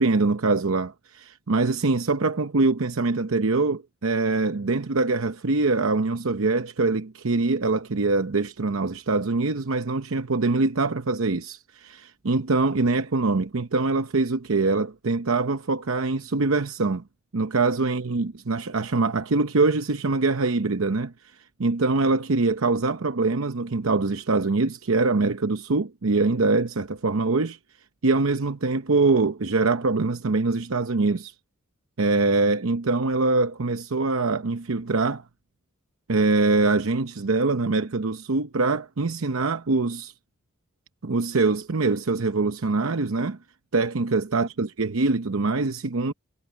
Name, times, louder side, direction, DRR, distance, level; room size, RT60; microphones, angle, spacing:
voice 1, 0.0-17.0 17.3-21.3 21.6-27.6 28.0-31.3 32.0-35.2 36.1-40.1 41.0-43.4 43.7-46.1, right 3 dB, 75° right, 0.8 m, -23 dB
head